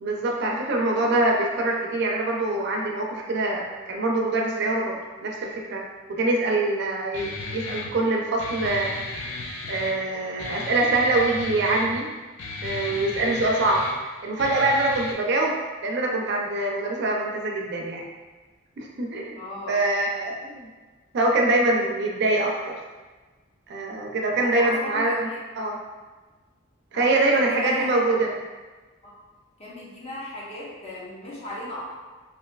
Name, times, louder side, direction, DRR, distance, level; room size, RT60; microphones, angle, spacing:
voice 1, 0.0-5.8 6.1-8.9 9.7-12.1 12.6-13.8 14.2-15.6 15.8-18.0 18.8-19.4 19.7-20.7 21.1-22.7 23.7-25.3 25.6-25.8 26.9-28.3, right 2 dB, 60° right, -1 dB, 0.4 m, -24 dB
Guitar, 7.1-15.1, left 3 dB, 75° left, 0.4 m, -35 dB
voice 2, 19.4-19.8 24.3-25.4 26.9-27.9 29.0-29.2 29.6-31.8, left 1 dB, 30° left, -6 dB, 0.7 m, -36 dB
3.1 x 2.5 x 2.3 m, 1.3 s
head